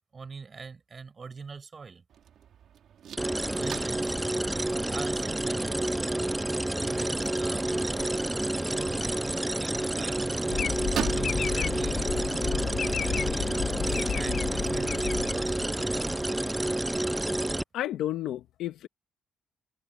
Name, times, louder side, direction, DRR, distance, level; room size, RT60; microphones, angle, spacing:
voice 1, 0.1-2.0 3.5-4.2 4.5-6.2 6.6-8.1 8.7-10.6 11.1-16.2, right 5 dB, 35° right, 5.4 m, -43 dB
sound 1, 2.1-14.4, right 9 dB, 65° right, 2.8 m, -44 dB
sound 2, 3.2-17.6, right 1 dB, 10° right, 0.4 m, -29 dB
sound 3, 10.5-15.9, left 7 dB, 55° left, 1.4 m, -32 dB
voice 2, 17.7-18.9, left 13 dB, 80° left, 1.6 m, -31 dB
cardioid pair, 85°, 0 cm